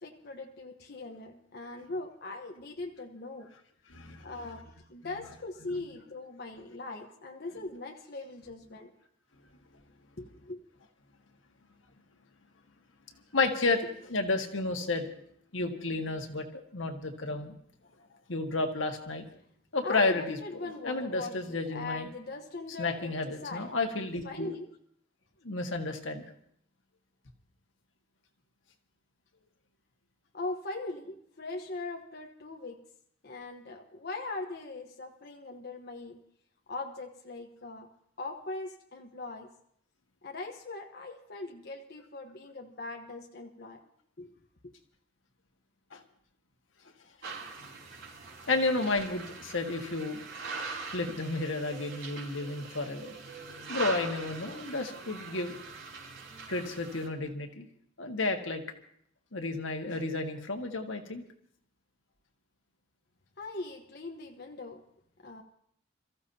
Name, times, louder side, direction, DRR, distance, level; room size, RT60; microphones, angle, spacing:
voice 1, 0.0-3.5 4.2-8.9 10.2-10.6 19.8-24.7 30.3-32.8 33.2-36.2 36.7-37.9 38.2-39.5 40.2-43.8 44.2-44.3 63.4-64.8 65.2-65.4, left 2 dB, 55° left, 2 dB, 1.2 m, -40 dB
voice 2, 3.9-4.2 13.3-15.1 15.5-16.5 16.7-17.5 18.3-19.2 19.7-22.1 22.8-24.5 25.4-26.2 45.9-46.0 47.2-47.4 48.5-50.2 50.9-53.1 53.7-55.6 56.5-57.7 58.0-58.6 59.3-61.2, left 3 dB, 85° left, 4 dB, 1.7 m, -32 dB
sound 1, 47.2-57.1, right 4 dB, 75° right, 4.6 m, -42 dB
28.5 x 14.5 x 2.8 m, 0.66 s
head